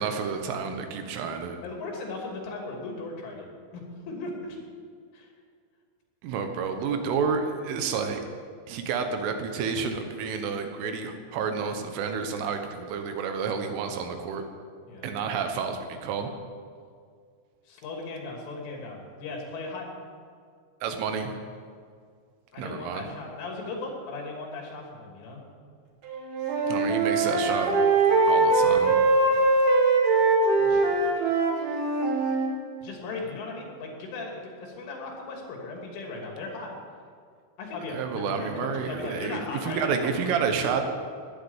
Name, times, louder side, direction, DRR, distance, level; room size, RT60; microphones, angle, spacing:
voice 1, 0.0-1.6 6.2-8.2 8.7-14.4 15.0-16.3 20.8-21.3 22.6-23.1 26.7-27.8 28.2-29.0 37.9-40.9, right 6 dB, 85° right, 6 dB, 3.9 m, -30 dB
voice 2, 1.6-3.5 3.7-4.6 5.1-5.3 14.8-15.1 17.7-19.9 22.5-25.4 29.3-29.5 30.6-30.8 32.8-36.8 37.6-40.4, left 3 dB, 75° left, 0 dB, 5.3 m, -37 dB
Wind instrument woodwind instrument, 26.1-32.5, right 3 dB, 60° right, 3.4 m, -22 dB
18.0 x 10.5 x 7.3 m, 2.1 s
omnidirectional pair, 5.6 m